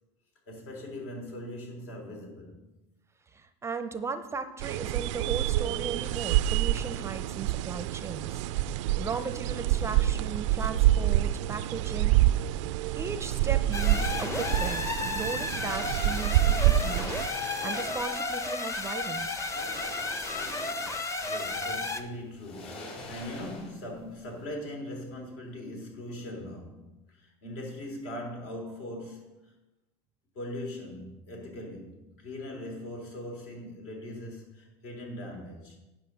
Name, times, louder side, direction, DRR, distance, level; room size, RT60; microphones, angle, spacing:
voice 1, 0.5-2.6 21.2-29.5 30.3-35.8, left 1 dB, 70° left, 3.7 m, -40 dB
voice 2, 3.3-12.2 12.9-17.0 17.6-19.5, right 5 dB, 20° right, 0.5 m, -37 dB
sound 1, 4.6-17.3, right 13 dB, 85° right, 0.4 m, -27 dB
sound 2, 13.6-15.1 16.2-16.3 16.7-18.3 19.3-21.1 21.4-21.5 22.3-24.0 24.2-24.4, left 2 dB, 40° left, 3.5 m, -44 dB
sound 3, 13.7-22.0, left 2 dB, 20° left, 0.8 m, -33 dB
9.9 x 6.0 x 6.8 m
supercardioid pair, 130°, 15 cm